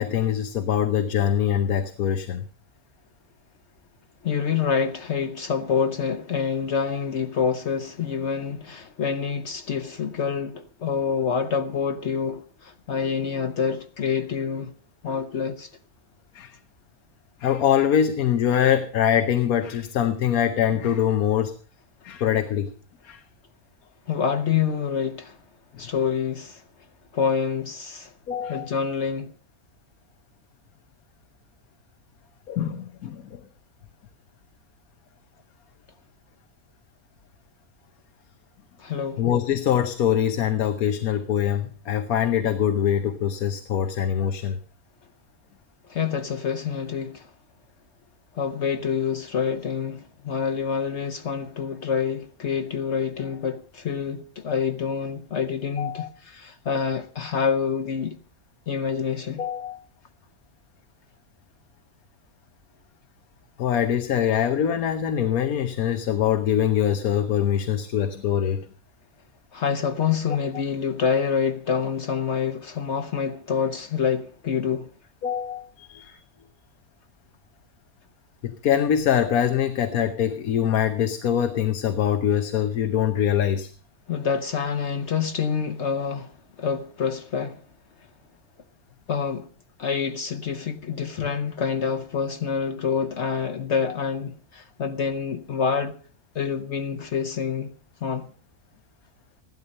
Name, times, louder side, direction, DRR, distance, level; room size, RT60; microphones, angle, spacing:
voice 1, 0.0-2.5 16.3-16.6 17.4-21.5 22.0-22.7 23.0-23.2 25.7-25.8 28.3-28.7 32.5-33.4 39.2-44.6 55.8-56.1 59.4-59.8 63.6-68.7 75.2-76.2 78.4-83.7 93.9-94.0, left 9 dB, 85° left, 1.4 m, -23 dB
voice 2, 4.2-14.7 15.0-15.7 24.1-25.4 25.8-26.6 27.1-28.1 28.5-29.3 38.8-39.2 45.9-47.3 48.3-58.2 58.7-59.4 69.5-74.9 76.1-76.2 84.1-87.6 89.1-89.5 89.8-96.0 96.3-97.7 98.0-98.3, left 6 dB, 55° left, 1.1 m, -27 dB
15.5 x 12.0 x 5.4 m
omnidirectional pair, 1.5 m